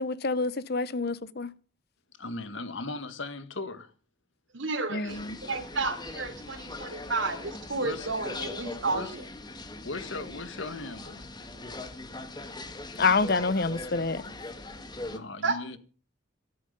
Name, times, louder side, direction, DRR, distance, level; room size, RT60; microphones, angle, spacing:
voice 1, 0.0-1.5 4.9-5.4 13.0-14.2, left 4 dB, 50° left, 0.8 m, -27 dB
voice 2, 2.2-3.9 7.8-8.1 8.8-9.2 9.8-11.3 14.7-15.8, left 2 dB, 65° left, 1.7 m, -38 dB
voice 3, 4.5-9.2 13.0-13.2 15.4-15.6, right 3 dB, 60° right, 3.4 m, -32 dB
sound 1, 5.1-15.2, left 2 dB, 20° left, 1.6 m, -41 dB
14.0 x 13.5 x 5.2 m
head